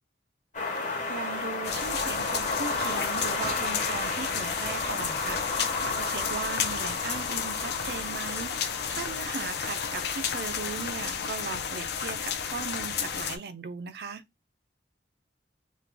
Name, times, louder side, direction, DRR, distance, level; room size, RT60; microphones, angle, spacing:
sound 1, 0.5-11.6, left 3 dB, 40° left, 1.0 m, -34 dB
voice 1, 1.1-14.2, right 5 dB, 60° right, 0.4 m, -38 dB
sound 2, 1.6-13.4, left 7 dB, 65° left, 0.5 m, -32 dB
3.2 x 2.2 x 3.3 m
head